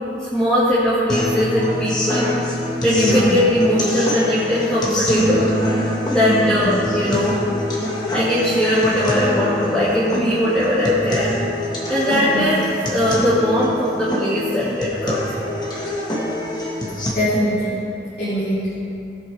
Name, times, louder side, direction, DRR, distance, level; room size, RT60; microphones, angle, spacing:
voice 1, 0.2-2.3 2.8-5.5 6.1-7.4 8.1-11.4 11.9-12.6 12.9-15.5, left 1 dB, 5° left, -12 dB, 1.8 m, -19 dB
sound 1, 1.1-17.1, left 1 dB, 25° left, 1.4 m, -25 dB
voice 2, 2.9-3.3 6.2-6.6 12.1-12.4 17.1-17.8 18.2-18.7, equal, 60° left, -10 dB, 2.2 m, -22 dB
17.0 x 7.7 x 3.3 m, 2.7 s
head